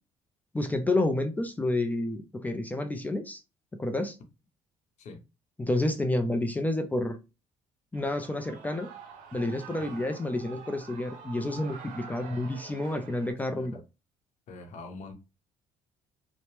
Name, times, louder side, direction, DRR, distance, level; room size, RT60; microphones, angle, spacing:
voice 1, 0.5-3.4 3.8-4.2 5.6-7.2 7.9-8.9 9.3-13.8, left 2 dB, 10° left, 0.4 m, -29 dB
Shout / Cheering, 7.9-13.3, right 6 dB, 80° right, 0.6 m, -47 dB
voice 2, 13.5-13.8 14.5-15.1, left 3 dB, 65° left, 0.8 m, -45 dB
2.8 x 2.1 x 3.1 m
cardioid pair, 95°, 13 cm